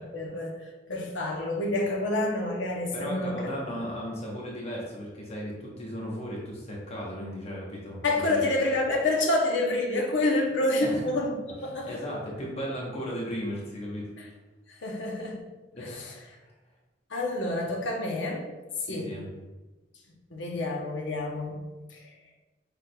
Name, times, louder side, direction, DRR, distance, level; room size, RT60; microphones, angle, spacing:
voice 1, 0.1-3.5 8.0-11.3 11.6-12.0 14.7-15.4 15.8-16.1 17.1-18.5 18.9-19.1 20.3-21.6 21.9-22.1, left 2 dB, 85° left, 0 dB, 0.8 m, -28 dB
voice 2, 2.9-8.4 10.8-11.0 11.9-14.1 15.7-16.0 16.4-16.5 18.9-19.3, equal, 35° left, -4 dB, 0.9 m, -36 dB
5.9 x 3.4 x 2.2 m, 1.1 s
head